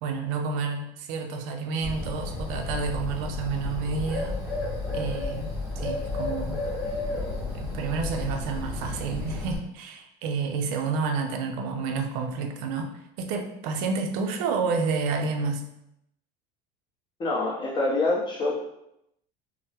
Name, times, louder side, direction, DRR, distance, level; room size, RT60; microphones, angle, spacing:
voice 1, 0.0-4.4 4.9-6.6 7.5-15.6, right 4 dB, 80° right, 5 dB, 0.5 m, -30 dB
Bird, 1.8-9.6, left 3 dB, 5° right, 0.9 m, -32 dB
voice 2, 17.2-18.5, left 2 dB, 25° left, -2 dB, 0.7 m, -25 dB
3.3 x 2.0 x 2.8 m, 0.80 s
cardioid pair, 135°, 19 cm